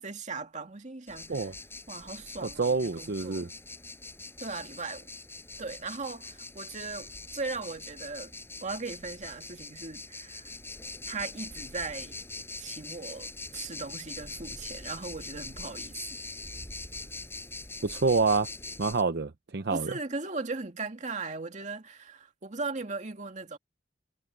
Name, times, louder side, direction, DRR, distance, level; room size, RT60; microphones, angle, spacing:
voice 1, 0.0-1.5 1.9-3.5 4.4-5.1 5.6-8.3 8.6-10.5 11.0-12.2 12.6-16.0 19.7-23.6, right 3 dB, 40° right, 2.1 m, -38 dB
sound 1, 1.1-19.0, left 3 dB, 15° left, 7.8 m, -43 dB
voice 2, 2.4-3.5 17.8-18.5 18.8-19.9, right 4 dB, 60° right, 0.7 m, -27 dB
head